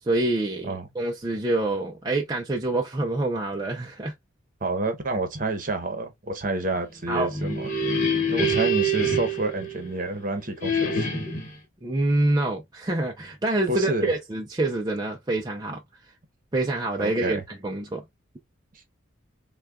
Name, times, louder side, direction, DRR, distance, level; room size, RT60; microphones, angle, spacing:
voice 1, 0.0-4.1 7.1-7.3 11.8-16.1 16.5-18.0, right 2 dB, 20° right, 0.4 m, -26 dB
voice 2, 4.6-7.7 8.0-11.3 13.7-14.1 17.0-17.4, right 2 dB, 40° right, 0.9 m, -29 dB
sound 1, 7.1-10.2 10.6-11.6, right 1 dB, 40° left, 1.4 m, -26 dB
6.1 x 2.3 x 2.2 m
head